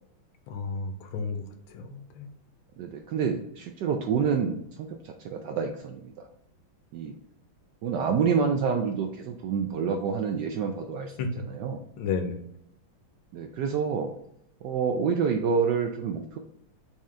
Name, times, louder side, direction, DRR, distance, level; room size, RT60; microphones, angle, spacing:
voice 1, 0.5-2.3 11.2-11.3 12.0-12.4, left 5 dB, 85° left, 6 dB, 1.5 m, -32 dB
voice 2, 2.8-6.3 6.9-7.1 7.8-11.8 13.3-14.1 14.6-16.4, right 6 dB, 75° right, 4 dB, 1.0 m, -28 dB
4.3 x 3.7 x 3.2 m, 0.72 s
omnidirectional pair, 2.2 m